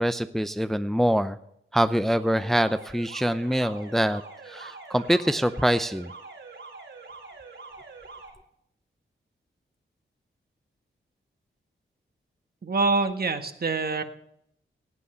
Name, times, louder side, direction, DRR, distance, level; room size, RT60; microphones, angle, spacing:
voice 1, 0.0-1.4 1.7-6.1, equal, ahead, 11 dB, 0.6 m, -24 dB
Alarm, 1.8-8.3, right 3 dB, 75° right, 5.1 m, -45 dB
voice 2, 12.6-14.0, right 3 dB, 50° right, 7 dB, 1.6 m, -25 dB
17.0 x 8.4 x 6.7 m, 0.71 s
cardioid pair, 75°, 20 cm